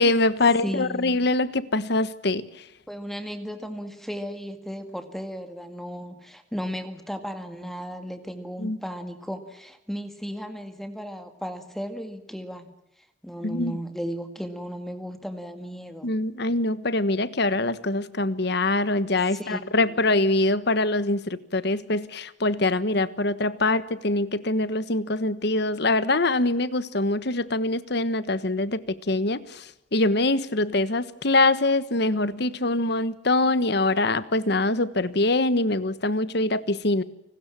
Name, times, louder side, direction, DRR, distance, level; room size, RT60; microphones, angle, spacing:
voice 1, 0.0-2.4 8.6-8.8 13.4-13.8 16.0-28.8 29.1-29.6 29.9-37.0, left 2 dB, 60° left, 15 dB, 1.4 m, -24 dB
voice 2, 0.6-1.2 2.9-12.7 13.2-16.1 19.3-20.0, equal, ahead, 8 dB, 2.0 m, -35 dB
29.5 x 20.0 x 7.5 m, 0.87 s
head